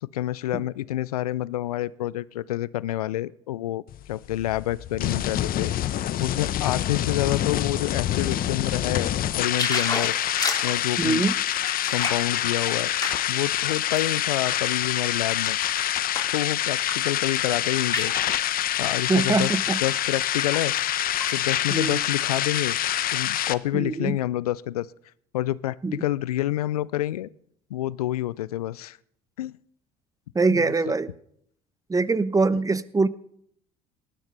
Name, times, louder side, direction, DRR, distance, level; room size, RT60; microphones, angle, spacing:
voice 1, 0.0-5.7 6.2-10.1 10.6-11.2 11.9-12.9 13.3-15.6 16.3-18.1 18.8-20.7 21.3-22.8 23.1-24.9 25.3-27.3 27.7-29.0 29.4-29.5 30.5-30.9, left 14 dB, 85° left, 21 dB, 0.5 m, -28 dB
sound 1, 3.9-23.5, left 12 dB, 50° left, 0.9 m, -26 dB
sound 2, 9.5-14.2 14.7-16.4 16.8-17.1 17.3-18.4 19.2-19.4 19.8-20.9 21.2-21.4 21.6-22.5 22.9-23.0, left 3 dB, 20° left, 3.5 m, -33 dB
voice 2, 11.0-11.3 19.1-19.8 21.7-22.0 23.7-24.2 25.8-26.0 30.3-31.1 31.9-33.1, right 3 dB, 20° right, 16 dB, 1.0 m, -23 dB
19.0 x 13.0 x 5.4 m, 0.69 s
hypercardioid pair, 60°, 19 cm